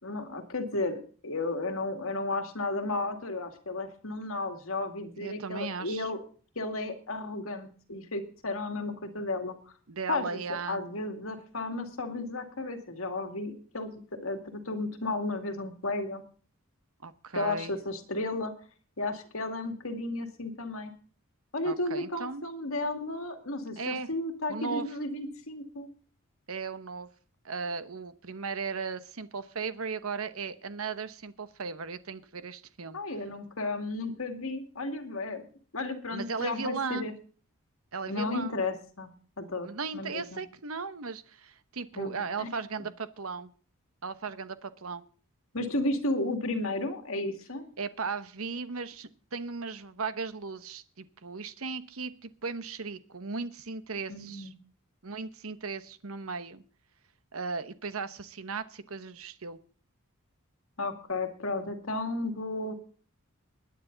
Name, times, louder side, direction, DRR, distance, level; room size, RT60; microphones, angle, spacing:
voice 1, 0.0-6.2 6.6-9.7 10.1-16.2 17.3-18.5 19.0-20.9 21.5-25.9 32.9-35.4 35.7-37.1 38.1-39.7 39.9-40.4 41.9-42.5 45.5-47.7 54.1-54.5 60.8-62.7, left 2 dB, 65° left, 5 dB, 2.3 m, -33 dB
voice 2, 5.2-6.1 9.9-10.8 17.0-17.7 21.6-22.4 23.8-24.1 24.5-24.9 26.5-27.1 27.4-33.0 36.1-37.1 37.9-38.6 39.6-43.5 44.0-45.0 47.8-54.5 55.0-56.6 57.3-59.6, right 4 dB, 75° right, 12 dB, 1.1 m, -36 dB
20.5 x 9.6 x 4.0 m, 0.41 s
head